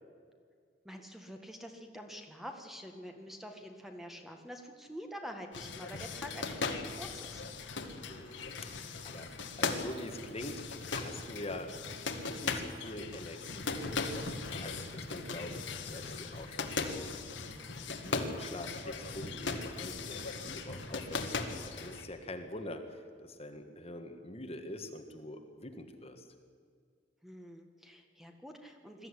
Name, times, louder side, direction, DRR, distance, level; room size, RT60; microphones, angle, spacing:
voice 1, 0.8-7.4 27.2-29.1, equal, ahead, 4 dB, 1.7 m, -47 dB
sound 1, 5.5-22.1, left 4 dB, 75° left, 2.0 m, -38 dB
voice 2, 8.1-9.3 9.6-10.6 10.9-11.7 12.3-17.1 17.9-26.3, left 1 dB, 35° left, 6 dB, 1.7 m, -45 dB
21.5 x 14.0 x 10.0 m, 2.1 s
head